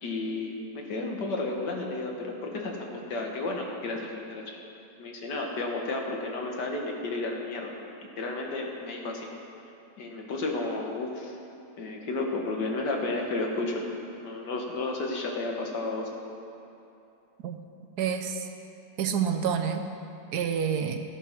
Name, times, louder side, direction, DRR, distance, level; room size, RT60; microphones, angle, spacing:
voice 1, 0.0-4.4 5.0-7.7 8.0-9.3 10.0-11.4 11.8-13.9 14.2-16.1, left 2 dB, 70° left, 0 dB, 2.0 m, -32 dB
voice 2, 18.0-18.5 19.0-19.9 20.3-21.0, right 7 dB, 70° right, 7 dB, 1.2 m, -28 dB
14.5 x 8.3 x 5.9 m, 2.8 s
omnidirectional pair, 1.9 m